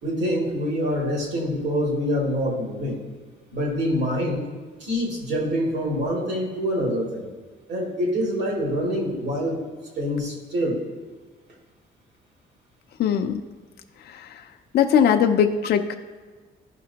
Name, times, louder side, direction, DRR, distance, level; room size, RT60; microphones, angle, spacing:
voice 1, 0.0-3.0 3.5-4.5 4.8-7.3 7.7-9.6 10.0-10.8, equal, 65° right, -2 dB, 2.6 m, -25 dB
voice 2, 13.0-13.4 14.1-14.4 14.7-15.9, left 8 dB, 55° left, 5 dB, 0.5 m, -20 dB
13.5 x 5.8 x 2.9 m, 1.4 s
cardioid pair, 170°, 20 cm